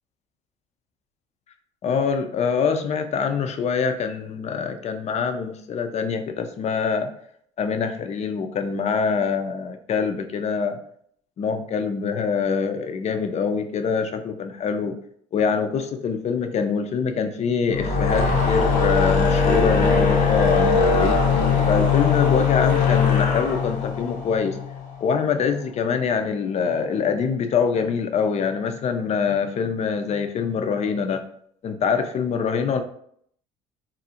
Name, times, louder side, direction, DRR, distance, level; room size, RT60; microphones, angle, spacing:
voice 1, 1.8-7.1 7.6-10.8 11.4-14.9 15.3-21.2 21.7-24.6 25.0-31.2 31.6-32.8, left 6 dB, 40° left, 7 dB, 0.4 m, -24 dB
sound 1, 17.6-25.0, left 5 dB, 80° left, 0.7 m, -20 dB
2.5 x 2.0 x 2.7 m, 0.65 s
hypercardioid pair, 70°, 17 cm